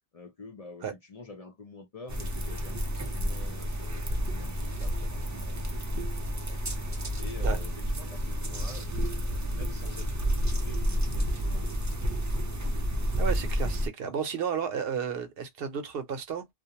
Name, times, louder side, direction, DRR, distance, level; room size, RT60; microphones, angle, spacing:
voice 1, 0.1-6.6 7.2-12.0, left 3 dB, 45° left, 0.5 m, -48 dB
sound 1, 2.1-13.9, equal, 30° right, 0.3 m, -30 dB
voice 2, 13.2-16.5, right 7 dB, 70° right, 0.8 m, -32 dB
2.4 x 2.1 x 2.8 m
omnidirectional pair, 1.0 m